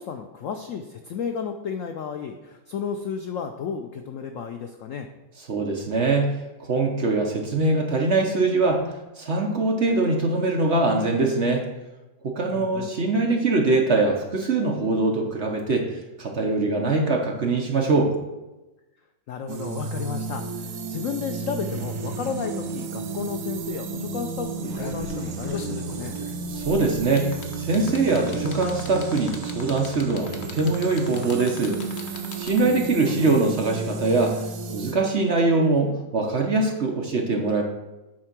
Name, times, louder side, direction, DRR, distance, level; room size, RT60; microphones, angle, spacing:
voice 1, 0.0-5.1 12.5-12.9 19.3-26.2 33.0-33.3, left 6 dB, 75° left, 6 dB, 0.7 m, -33 dB
voice 2, 5.5-6.3 6.6-11.6 12.2-15.9 16.2-18.1 26.5-27.3 27.6-31.8 32.4-34.4 34.7-37.6, right 3 dB, 50° right, 1 dB, 0.9 m, -22 dB
sound 1, 19.5-34.9, right 4 dB, 65° right, 1.2 m, -33 dB
sound 2, 24.7-32.8 34.0-34.1, left 4 dB, 50° left, 0.9 m, -40 dB
9.0 x 3.7 x 6.0 m, 1.0 s
omnidirectional pair, 2.0 m